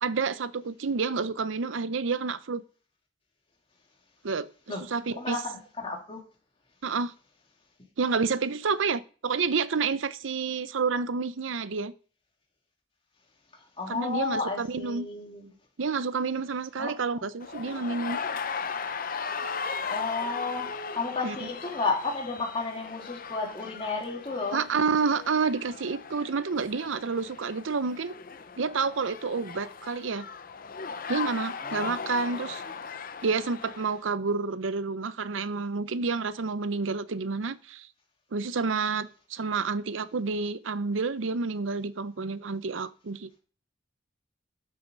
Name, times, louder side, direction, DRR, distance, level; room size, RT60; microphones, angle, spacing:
voice 1, 0.0-2.6 4.2-5.4 6.8-7.1 8.0-11.9 13.9-15.1 15.8-18.2 21.2-21.4 24.5-28.1 28.6-30.2 31.1-32.6 33.2-37.9 38.3-43.4, right 4 dB, 90° right, 0.6 m, -29 dB
voice 2, 5.2-6.2 13.8-15.5 16.8-16.9 19.9-24.6 31.6-32.0, left 3 dB, 30° left, 3.2 m, -32 dB
sound 1, 17.4-34.0, left 5 dB, 50° left, 0.7 m, -37 dB
12.0 x 6.9 x 5.3 m
head